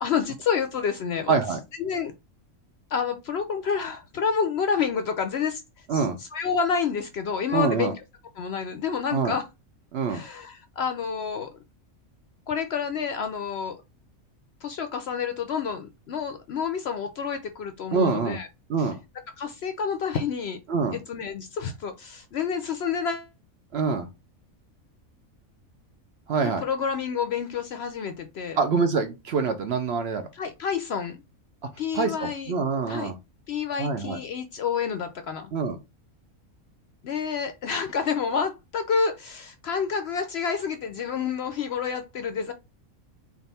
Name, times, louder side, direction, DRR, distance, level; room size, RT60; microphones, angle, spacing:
voice 1, 0.0-1.4 1.8-2.1 2.9-5.6 5.9-7.9 8.4-9.4 10.1-11.5 12.5-13.8 14.6-18.5 18.8-18.9 19.4-20.6 20.9-23.3 26.6-28.6 30.3-31.2 31.8-32.5 32.9-33.1 33.5-35.5 37.0-42.5, left 6 dB, 65° left, 0.7 m, -29 dB
voice 2, 1.3-1.6 5.9-6.2 7.5-7.9 9.1-9.3 9.9-10.2 17.9-18.4 18.7-19.0 20.7-21.0 23.7-24.1 26.3-26.6 28.6-30.3 31.9-33.2 33.8-34.2 35.5-35.8, right 5 dB, 60° right, 0.7 m, -25 dB
3.5 x 2.5 x 4.1 m
omnidirectional pair, 1.4 m